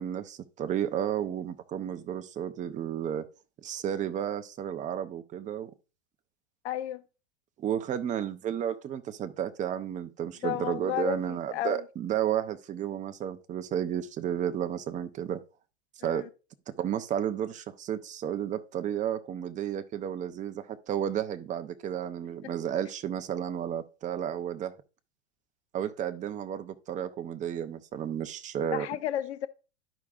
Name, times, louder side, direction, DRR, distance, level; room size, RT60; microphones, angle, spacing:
voice 1, 0.0-3.2 3.6-5.7 7.6-15.4 16.0-16.3 16.7-24.7 25.7-28.9, right 9 dB, 20° right, 0.6 m, -32 dB
voice 2, 6.6-7.0 10.4-11.8 16.0-16.3 22.4-22.5 28.7-29.5, left 12 dB, 70° left, 0.7 m, -33 dB
12.0 x 4.9 x 2.4 m
hypercardioid pair, 110°, 35 cm